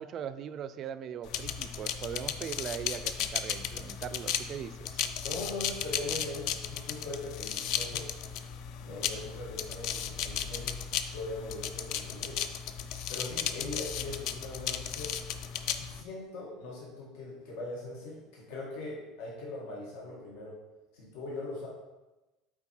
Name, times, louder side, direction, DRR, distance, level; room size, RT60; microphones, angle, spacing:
voice 1, 0.0-5.0, right 8 dB, 35° right, 11 dB, 0.3 m, -40 dB
sound 1, 1.3-16.0, left 9 dB, 55° left, 0.5 m, -35 dB
voice 2, 5.2-8.1 8.8-10.7 11.1-12.4 13.1-15.1 15.8-20.6 20.9-21.7, left 2 dB, 80° left, -3 dB, 1.9 m, -40 dB
7.8 x 4.5 x 4.5 m, 1.1 s
cardioid pair, 170°, 0 cm